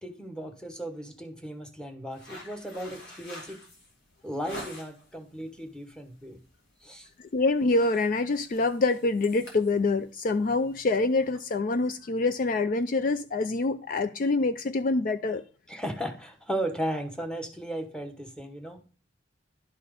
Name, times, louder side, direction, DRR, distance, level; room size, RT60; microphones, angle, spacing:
voice 1, 0.0-3.6 4.2-6.4 6.8-7.1 15.7-18.8, right 1 dB, 5° left, 1.0 m, -36 dB
sound 1, 2.1-5.1 5.6-5.9 6.3-6.5 6.8-7.2 7.5-11.4, equal, 75° left, 2.9 m, -46 dB
voice 2, 7.3-15.4, left 3 dB, 45° left, 0.4 m, -26 dB
11.0 x 4.2 x 5.0 m
head